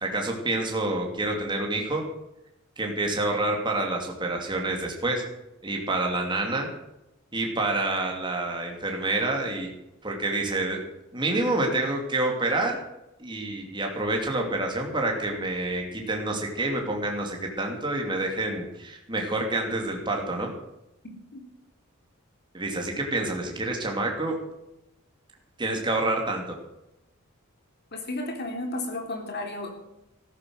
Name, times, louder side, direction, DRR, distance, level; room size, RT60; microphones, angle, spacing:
voice 1, 0.0-2.0 2.8-5.2 5.6-6.7 7.3-9.7 10.0-10.8 11.1-12.8 13.2-20.5 22.5-24.4 25.6-26.4, right 2 dB, 20° right, 1 dB, 2.8 m, -28 dB
voice 2, 27.9-29.7, left 2 dB, 50° left, 3 dB, 3.3 m, -33 dB
14.5 x 11.0 x 6.4 m, 0.90 s
head